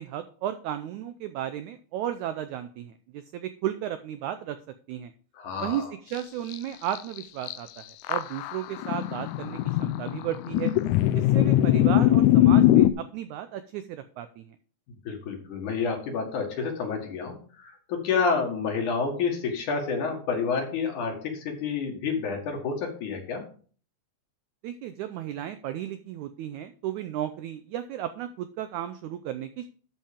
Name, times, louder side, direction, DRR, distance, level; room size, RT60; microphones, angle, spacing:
voice 1, 0.0-4.6 4.9-5.1 5.6-10.7 11.1-14.6 24.6-29.7, right 11 dB, 85° right, 10 dB, 1.7 m, -34 dB
voice 2, 5.3-5.8 15.0-23.4, left 5 dB, 60° left, 3 dB, 3.1 m, -29 dB
sound 1, 6.2-6.3 6.5-6.6 6.9-7.6 8.0-12.9, left 13 dB, 85° left, 1.7 m, -21 dB
12.0 x 5.5 x 5.1 m, 0.43 s
omnidirectional pair, 4.1 m